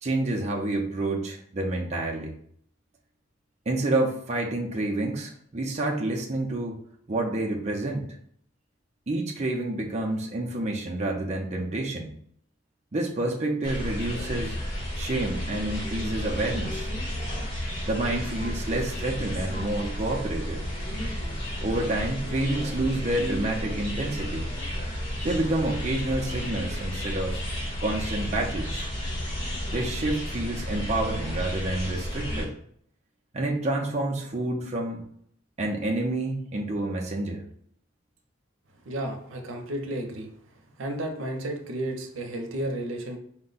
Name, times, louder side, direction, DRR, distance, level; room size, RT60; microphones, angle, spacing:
voice 1, 0.0-2.3 3.7-6.8 7.1-8.1 9.1-12.1 12.9-14.6 14.9-16.9 17.9-20.6 21.6-24.5 25.2-27.4 27.8-28.9 29.7-32.5 33.3-35.0 35.6-37.4, right 2 dB, 35° right, -1 dB, 0.5 m, -28 dB
sound 1, 13.6-32.4, equal, 55° left, 1.7 m, -32 dB
voice 2, 38.8-40.3 40.8-43.2, right 1 dB, 85° right, 3 dB, 0.7 m, -32 dB
4.4 x 2.1 x 3.9 m, 0.64 s
head